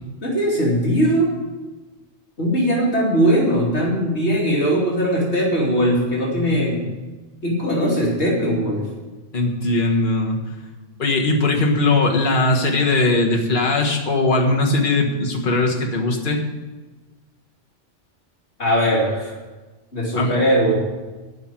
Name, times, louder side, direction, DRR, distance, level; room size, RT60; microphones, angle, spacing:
voice 1, 0.2-1.4 2.4-6.8 7.4-8.9 18.6-19.3 19.9-20.7, equal, 65° left, -4 dB, 3.0 m, -20 dB
voice 2, 9.3-10.4 11.0-16.4 20.1-20.3, left 2 dB, 45° left, 0 dB, 1.6 m, -19 dB
12.0 x 6.0 x 9.0 m, 1.2 s
omnidirectional pair, 1.2 m